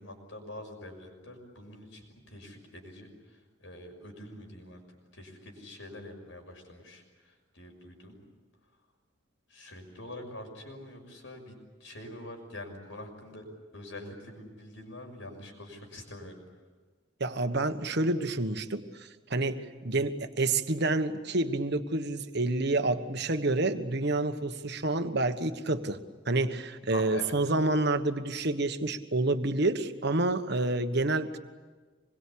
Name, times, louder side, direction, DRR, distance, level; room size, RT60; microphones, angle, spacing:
voice 1, 0.0-4.8 5.1-8.1 9.5-13.4 13.7-16.4 26.9-27.3, left 1 dB, 75° left, 3 dB, 6.2 m, -45 dB
voice 2, 17.2-18.8 19.3-26.0 26.3-31.4, right 2 dB, 60° right, 9 dB, 1.4 m, -28 dB
26.0 x 22.0 x 8.7 m, 1.3 s
head